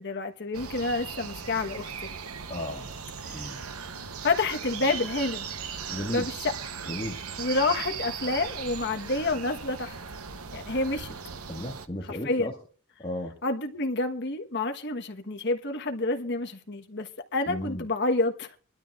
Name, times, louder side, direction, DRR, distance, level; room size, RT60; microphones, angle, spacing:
voice 1, 0.0-1.9 3.3-3.5 4.2-5.5 6.1-6.5 7.4-9.9 10.5-11.1 12.1-12.5 13.4-18.6, left 2 dB, 55° left, 1.4 m, -28 dB
sound 1, 0.5-11.9, right 6 dB, 85° right, 1.0 m, -38 dB
voice 2, 2.5-3.0 3.3-3.6 5.9-6.3 6.9-7.2 11.5-12.6 13.0-13.4 17.5-17.8, left 1 dB, 25° left, 1.8 m, -34 dB
23.5 x 12.5 x 2.5 m
head